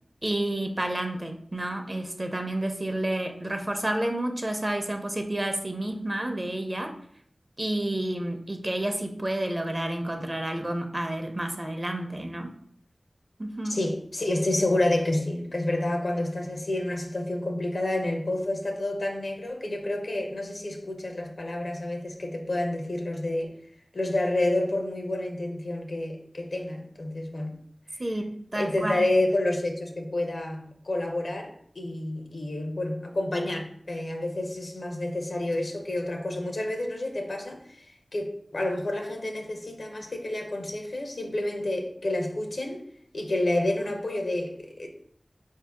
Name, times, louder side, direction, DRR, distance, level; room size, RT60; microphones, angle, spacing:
voice 1, 0.2-6.9 7.6-12.5 13.4-13.8 28.0-29.1, right 1 dB, 35° right, 5 dB, 0.6 m, -30 dB
voice 2, 13.7-23.5 23.9-27.6 28.5-37.9 38.1-42.8 43.1-44.9, left 1 dB, 80° left, 3 dB, 0.7 m, -29 dB
4.4 x 2.7 x 3.5 m, 0.63 s
wide cardioid pair, 40°, 0 cm